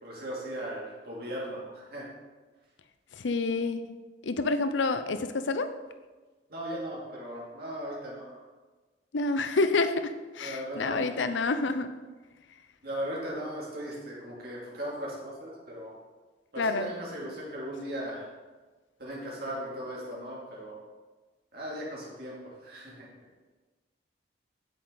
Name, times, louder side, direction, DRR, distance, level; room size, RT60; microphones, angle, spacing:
voice 1, 0.0-2.1 6.5-8.4 10.4-11.3 12.8-16.0 16.5-18.3 19.0-20.7 21.5-23.1, equal, 55° right, -4 dB, 2.6 m, -38 dB
voice 2, 3.1-3.9 4.2-5.7 9.1-11.9 16.6-16.9, left 3 dB, 85° left, 10 dB, 0.6 m, -28 dB
8.4 x 7.4 x 4.0 m, 1.3 s
head